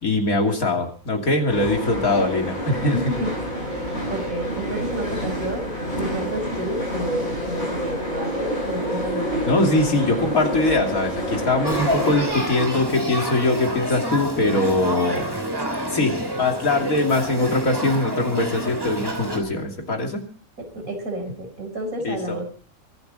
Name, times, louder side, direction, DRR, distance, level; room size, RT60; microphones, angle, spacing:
voice 1, 0.0-3.0 9.5-15.3 15.9-20.2 22.0-22.4, left 2 dB, 80° left, 2 dB, 3.3 m, -22 dB
sound 1, 1.5-12.3, equal, 50° left, 7.6 m, -28 dB
voice 2, 2.8-3.3 3.7-9.7 20.6-22.4, right 1 dB, 75° right, 5 dB, 5.1 m, -30 dB
Male speech man speaking / Child speech kid speaking / Conversation, 11.6-19.4, equal, 15° right, 3.0 m, -28 dB
23.5 x 12.0 x 4.1 m, 0.43 s
omnidirectional pair, 1.5 m